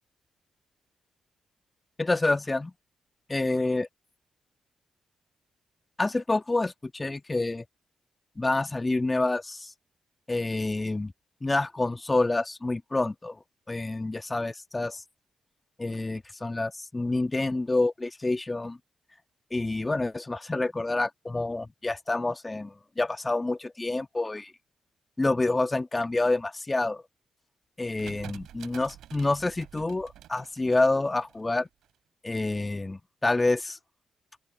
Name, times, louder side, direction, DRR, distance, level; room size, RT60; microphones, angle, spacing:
voice 1, 2.0-2.7 3.3-3.9 6.0-7.6 8.4-9.7 10.3-11.1 11.4-13.4 13.7-15.0 15.8-18.8 19.5-24.5 25.2-27.0 27.8-31.7 32.2-33.8, left 2 dB, 25° left, 1.7 m, -28 dB
sound 1, 28.0-31.9, right 12 dB, 80° right, 5.9 m, -48 dB
open air
supercardioid pair, 50°, 0 cm